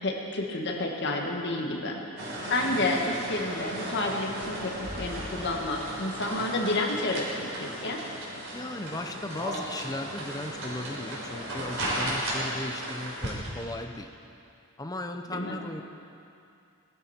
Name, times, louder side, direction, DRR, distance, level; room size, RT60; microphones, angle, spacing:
voice 1, 0.0-2.0 2.4-8.0 15.3-15.6, left 2 dB, 60° left, 0 dB, 1.9 m, -30 dB
sound 1, 2.2-13.7, right 1 dB, 90° right, 4.2 m, -35 dB
sound 2, 4.6-6.3, equal, 30° right, 2.9 m, -43 dB
voice 2, 8.5-14.1 14.8-15.8, left 1 dB, 20° left, 6 dB, 0.8 m, -36 dB
21.0 x 12.5 x 4.5 m, 2.6 s
head